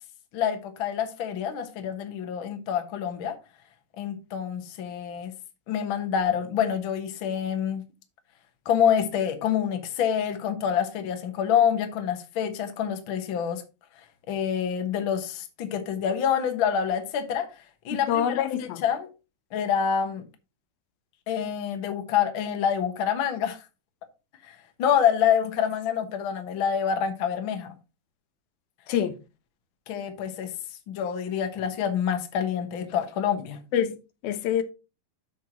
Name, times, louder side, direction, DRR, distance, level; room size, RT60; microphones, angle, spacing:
voice 1, 0.3-3.4 4.0-5.3 5.7-7.8 8.6-13.6 14.3-17.5 17.8-19.1 19.5-20.3 21.3-23.6 24.4-27.7 29.9-30.5 30.9-33.6, left 8 dB, 65° left, 1.3 m, -27 dB
voice 2, 17.9-18.8 28.9-29.1 33.7-34.0 34.2-34.6, left 9 dB, 90° left, 2.7 m, -25 dB
13.5 x 4.6 x 3.0 m
omnidirectional pair, 4.1 m